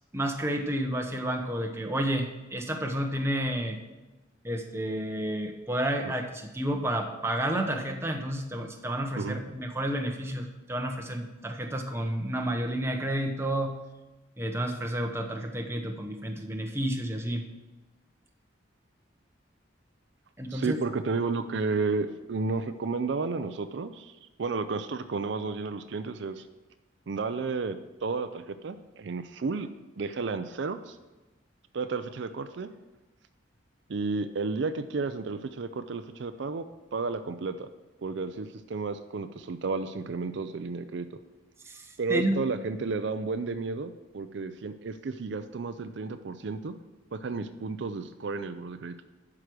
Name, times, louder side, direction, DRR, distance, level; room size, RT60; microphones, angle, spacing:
voice 1, 0.1-3.8 4.4-13.7 14.4-17.4 20.4-20.8 41.7-42.4, right 1 dB, 15° right, 3 dB, 0.9 m, -30 dB
voice 2, 20.5-24.1 24.4-26.4 27.1-29.7 30.0-31.0 31.7-32.7 33.9-36.6 36.9-37.7 38.0-41.1 42.0-46.7 47.1-48.9, right 4 dB, 65° right, 10 dB, 0.4 m, -32 dB
11.5 x 4.9 x 6.1 m, 1.1 s
head